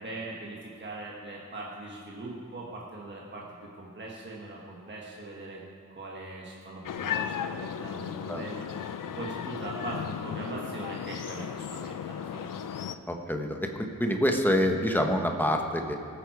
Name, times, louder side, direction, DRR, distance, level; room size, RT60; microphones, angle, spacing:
voice 1, 0.0-5.6 5.9-12.7, right 2 dB, 35° right, -4 dB, 1.5 m, -41 dB
sound 1, 6.8-13.0, left 8 dB, 80° left, 0.6 m, -35 dB
voice 2, 13.1-15.9, equal, 5° left, 3 dB, 1.0 m, -26 dB
19.0 x 8.9 x 4.7 m, 2.4 s
wide cardioid pair, 170°, 32 cm